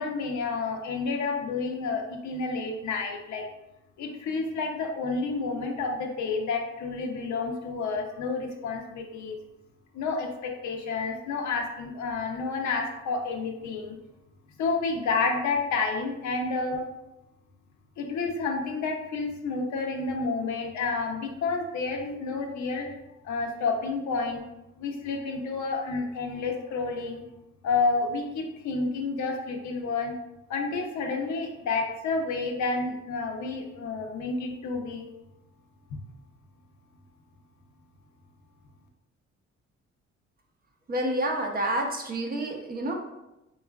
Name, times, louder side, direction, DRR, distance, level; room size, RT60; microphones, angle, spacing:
voice 1, 0.0-3.4 4.0-9.4 9.9-14.0 14.6-16.9 18.0-22.9 23.2-24.4 24.8-27.2 27.6-30.1 30.5-35.1, left 4 dB, 70° left, 2 dB, 0.6 m, -30 dB
voice 2, 40.9-42.9, right 1 dB, 30° right, 1 dB, 0.6 m, -28 dB
4.2 x 2.3 x 2.2 m, 0.95 s
cardioid pair, 90°, 30 cm